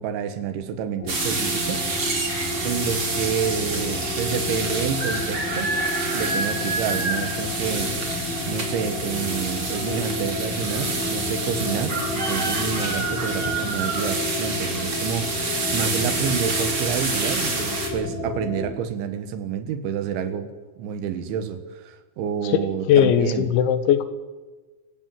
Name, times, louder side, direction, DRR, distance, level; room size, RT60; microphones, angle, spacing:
voice 1, 0.0-2.2 2.6-5.7 6.1-8.2 8.5-20.5 20.8-23.5, right 8 dB, 90° right, 10 dB, 4.0 m, -29 dB
sound 1, 1.0-18.7, left 2 dB, 50° left, 5.1 m, -31 dB
sound 2, 1.1-17.9, right 3 dB, 30° right, 3.7 m, -28 dB
voice 2, 22.4-24.0, left 9 dB, 85° left, 12 dB, 3.7 m, -19 dB
27.0 x 15.5 x 7.8 m, 1.3 s
omnidirectional pair, 5.2 m